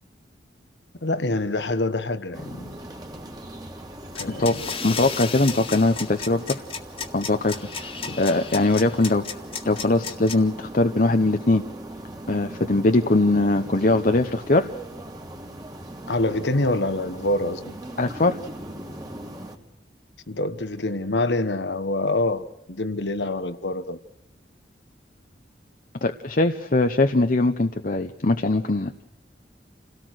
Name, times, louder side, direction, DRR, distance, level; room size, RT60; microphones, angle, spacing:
voice 1, 1.0-2.7 4.1-4.7 8.1-8.2 16.1-17.8 20.3-24.0, left 2 dB, 85° left, 1.3 m, -26 dB
sound 1, 2.3-19.6, right 1 dB, 20° right, 2.6 m, -39 dB
sound 2, 4.1-10.3, left 6 dB, 35° left, 1.9 m, -33 dB
voice 2, 4.8-6.6 7.1-9.4 9.6-11.6 12.3-14.7 18.0-18.4 26.0-29.0, left 2 dB, 50° left, 0.9 m, -21 dB
28.5 x 18.0 x 6.4 m
head